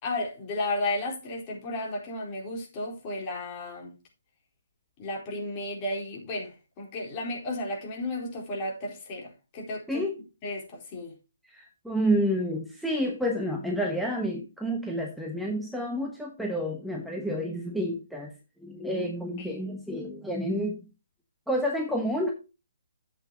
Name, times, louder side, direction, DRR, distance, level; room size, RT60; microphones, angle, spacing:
voice 1, 0.0-3.9 5.0-10.1 10.4-11.1 19.4-19.5, left 2 dB, 30° left, 4.3 m, -33 dB
voice 2, 11.5-18.3 18.6-20.8 21.5-22.3, equal, ahead, 1.2 m, -29 dB
12.0 x 8.2 x 2.9 m
figure-of-eight pair, 135°, 0 cm